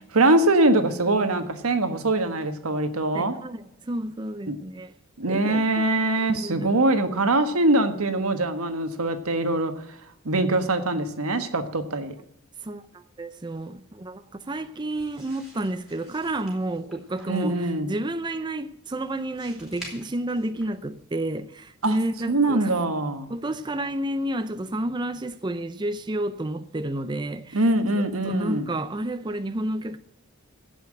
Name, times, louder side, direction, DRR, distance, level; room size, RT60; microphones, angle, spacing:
voice 1, 0.0-3.4 4.5-4.6 5.2-10.0 10.2-12.1 17.3-17.9 21.8-22.0 22.3-23.3 27.5-28.7, right 2 dB, 85° right, 1.4 m, -23 dB
voice 2, 3.1-4.9 5.2-5.9 6.3-6.7 12.6-22.7 23.3-27.6 28.2-30.0, right 1 dB, 20° right, 0.5 m, -30 dB
sound 1, 14.9-21.0, right 1 dB, ahead, 4.2 m, -49 dB
16.0 x 5.7 x 7.7 m
head